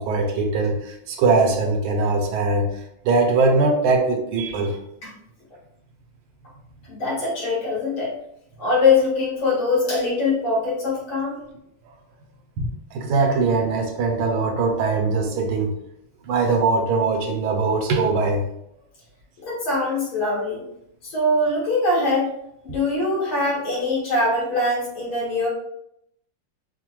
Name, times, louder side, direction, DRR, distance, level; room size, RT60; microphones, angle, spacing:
voice 1, 0.0-4.8 12.6-15.7 16.2-18.4, right 3 dB, 80° right, 3 dB, 1.4 m, -21 dB
voice 2, 6.9-8.1 8.6-11.4 19.4-20.6 21.0-22.3 22.6-25.5, left 2 dB, 80° left, -7 dB, 2.6 m, -22 dB
4.8 x 2.1 x 3.0 m, 0.79 s
omnidirectional pair, 2.3 m